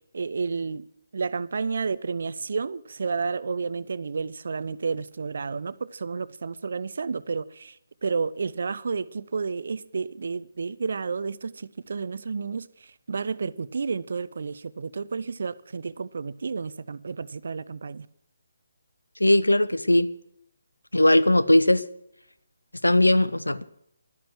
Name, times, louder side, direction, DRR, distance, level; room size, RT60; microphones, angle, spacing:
voice 1, 0.1-0.8 1.1-7.8 8.0-18.1, right 5 dB, 50° right, 0.5 m, -31 dB
voice 2, 19.2-20.1 20.9-21.8 22.8-23.6, left 1 dB, 80° left, 0.7 m, -19 dB
12.0 x 10.0 x 6.2 m
figure-of-eight pair, 145°, 0 cm